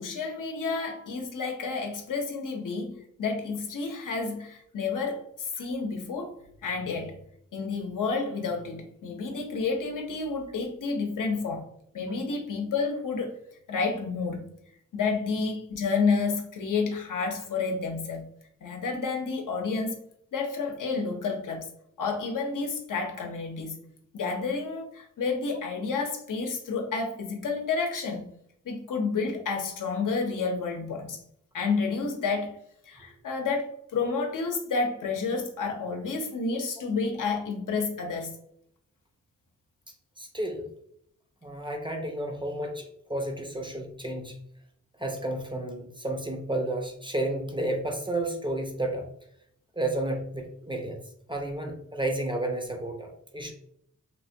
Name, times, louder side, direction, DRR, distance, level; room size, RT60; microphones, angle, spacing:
voice 1, 0.0-6.4 6.6-7.1 7.5-11.7 11.9-13.4 13.7-14.5 14.9-18.2 18.6-20.0 20.3-21.7 22.0-23.8 24.1-28.2 28.6-31.2 31.5-32.6 32.9-38.3, left 4 dB, 80° left, 2 dB, 0.7 m, -30 dB
voice 2, 40.2-40.7 41.4-44.4 45.0-49.1 49.8-51.0 51.3-53.5, right 1 dB, 15° right, 2 dB, 0.4 m, -31 dB
3.2 x 2.1 x 2.6 m, 0.70 s
wide cardioid pair, 135°, 31 cm